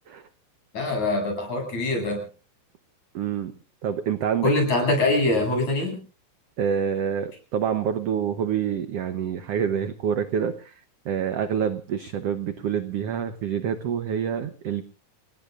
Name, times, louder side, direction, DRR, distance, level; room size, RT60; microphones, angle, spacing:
voice 1, 0.7-2.2 4.4-6.0, left 2 dB, 50° left, 3 dB, 8.8 m, -23 dB
voice 2, 3.1-3.5 3.8-4.5 6.6-10.7 11.0-14.8, right 8 dB, 75° right, 9 dB, 1.4 m, -27 dB
30.0 x 17.5 x 2.5 m, 0.38 s
omnidirectional pair, 4.1 m